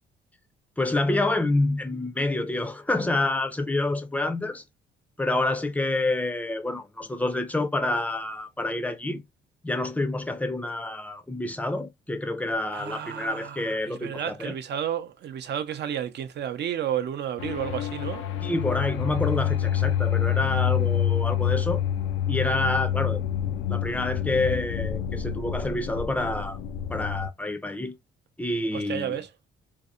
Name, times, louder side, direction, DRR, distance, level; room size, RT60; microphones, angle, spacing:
voice 1, 0.8-4.6 5.2-9.2 9.6-14.5 18.4-21.8 22.3-23.2 23.7-26.6 26.9-27.9 28.4-29.2, left 2 dB, 5° left, 0.5 m, -28 dB
voice 2, 12.7-18.2 28.7-29.3, right 9 dB, 60° right, 0.6 m, -32 dB
sound 1, 17.4-27.3, left 10 dB, 85° left, 0.4 m, -27 dB
2.6 x 2.0 x 2.4 m
cardioid pair, 90°, 20 cm